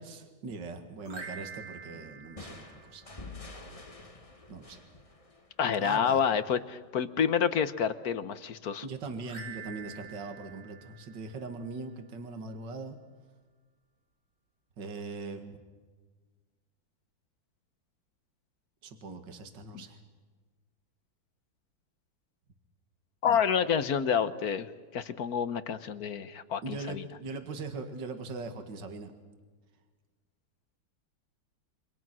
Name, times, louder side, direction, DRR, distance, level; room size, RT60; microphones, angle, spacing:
voice 1, 0.0-3.0 4.5-4.8 5.8-6.2 8.8-13.0 14.8-15.6 18.8-20.0 23.2-23.4 26.6-29.1, right 3 dB, 60° right, 7 dB, 2.5 m, -40 dB
sound 1, 1.0-3.5 9.2-11.9, right 5 dB, 85° right, 4.6 m, -47 dB
sound 2, 2.4-6.0, left 3 dB, 20° left, 1.3 m, -48 dB
voice 2, 5.6-8.8 19.7-19.8 23.2-27.0, left 7 dB, 55° left, 13 dB, 1.2 m, -28 dB
28.0 x 25.0 x 6.2 m, 1.4 s
omnidirectional pair, 2.2 m